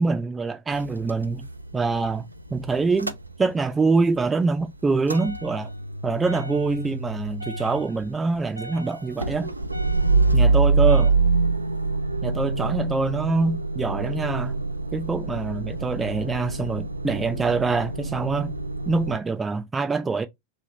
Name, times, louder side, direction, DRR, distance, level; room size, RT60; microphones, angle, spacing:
voice 1, 0.0-5.7 6.0-9.5 10.3-11.1 12.2-14.6 14.9-18.5 18.9-20.3, right 4 dB, 15° right, 0.5 m, -25 dB
Motor vehicle (road) / Engine starting / Idling, 0.7-3.9 4.2-19.2, right 3 dB, 85° right, 0.4 m, -26 dB
3.2 x 3.0 x 3.8 m
figure-of-eight pair, 90°, 0 cm